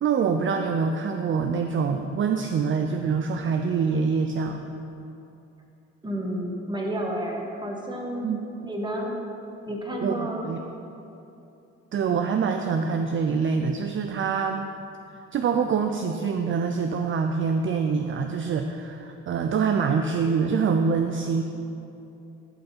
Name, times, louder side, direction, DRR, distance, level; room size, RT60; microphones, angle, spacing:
voice 1, 0.0-4.6 8.2-8.4 10.0-10.6 11.9-14.7 15.3-21.4, right 5 dB, 40° right, 6 dB, 0.5 m, -25 dB
voice 2, 6.0-8.3 8.7-9.1 9.6-10.5, right 1 dB, 15° right, 0 dB, 1.5 m, -30 dB
11.5 x 5.4 x 4.3 m, 2.8 s
cardioid pair, 90°, 30 cm